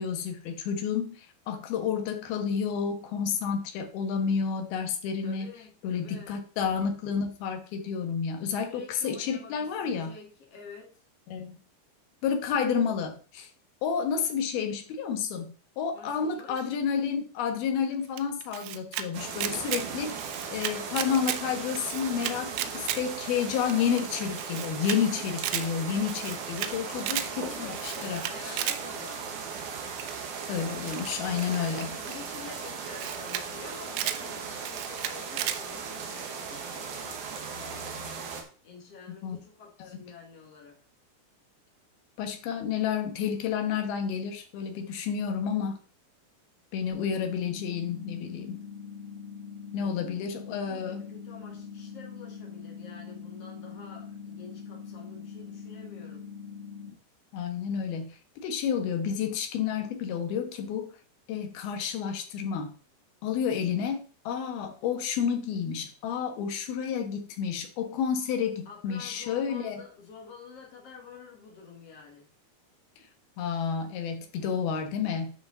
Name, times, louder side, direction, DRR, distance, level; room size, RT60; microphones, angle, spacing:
voice 1, 0.0-5.5 5.8-10.1 11.3-11.6 12.2-13.5 13.8-28.6 30.5-31.9 39.2-39.4 39.8-40.0 42.2-45.8 46.7-48.6 49.7-51.0 57.3-60.9 61.3-62.7 63.2-69.8 73.4-75.3, left 7 dB, 70° left, 6 dB, 2.9 m, -30 dB
voice 2, 5.2-6.4 8.6-11.0 15.9-16.7 26.9-29.3 31.5-38.1 38.6-40.8 49.8-56.2 68.7-72.3, left 5 dB, 45° left, -1 dB, 2.6 m, -48 dB
Camera, 18.2-19.1 19.3-19.8 20.2-21.4 21.7-23.0 23.4-23.5 23.7-23.8 24.0-24.1 24.4-25.0 25.3-25.7 26.1-26.7 27.0-27.3 27.7-28.8 30.0-30.3 30.9-32.1 32.7-32.8 33.0-33.4 33.7-34.2 34.6-35.6, right 12 dB, 80° right, 2.2 m, -33 dB
sound 1, 19.1-38.4, right 5 dB, 60° right, 2.4 m, -37 dB
sound 2, 46.9-56.9, left 6 dB, 25° left, 2.3 m, -43 dB
11.5 x 5.0 x 3.9 m, 0.37 s
omnidirectional pair, 4.9 m